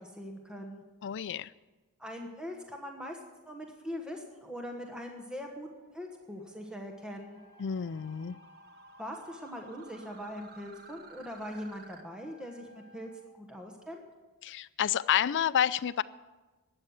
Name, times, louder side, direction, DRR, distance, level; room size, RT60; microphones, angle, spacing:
voice 1, 0.0-0.8 2.0-3.2 3.5-5.7 5.9-7.4 9.0-13.1 13.4-14.0, equal, 5° right, 2 dB, 1.2 m, -41 dB
voice 2, 1.0-1.5 7.6-8.4 14.4-16.0, left 9 dB, 55° left, 16 dB, 0.4 m, -29 dB
sound 1, 4.3-12.0, right 5 dB, 45° right, 1.2 m, -57 dB
Wind instrument woodwind instrument, 7.3-13.3, equal, 15° left, 3.2 m, -59 dB
12.5 x 8.6 x 8.0 m, 1.2 s
head